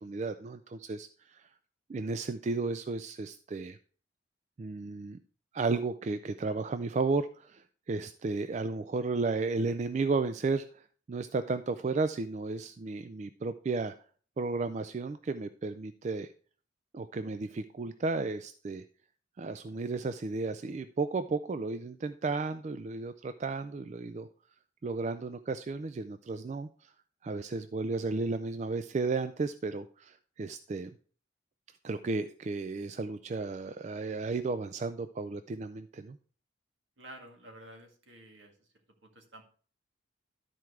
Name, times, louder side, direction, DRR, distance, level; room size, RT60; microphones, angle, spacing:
voice 1, 0.0-1.5 1.9-3.8 4.6-5.2 5.5-13.9 14.4-16.3 16.9-18.9 19.4-24.3 24.8-26.9 27.2-30.9 31.8-36.2, right 3 dB, 35° right, 11 dB, 0.3 m, -33 dB
voice 2, 37.0-38.7 39.0-39.4, right 1 dB, 75° right, 2 dB, 2.0 m, -51 dB
12.0 x 4.5 x 4.7 m, 0.43 s
head